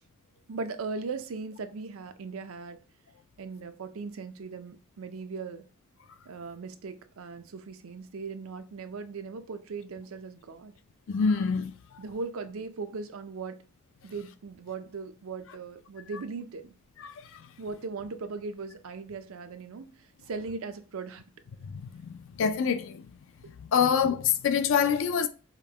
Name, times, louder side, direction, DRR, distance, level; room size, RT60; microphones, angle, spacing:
voice 1, 0.5-2.8 3.4-5.7 6.3-10.7 12.0-13.6 14.0-16.7 17.6-19.9 20.3-21.3, right 4 dB, 75° right, 0.5 m, -38 dB
voice 2, 11.1-11.7 17.0-17.1 22.0-23.0 23.7-25.3, left 6 dB, 60° left, 0.4 m, -25 dB
5.0 x 2.1 x 2.8 m
head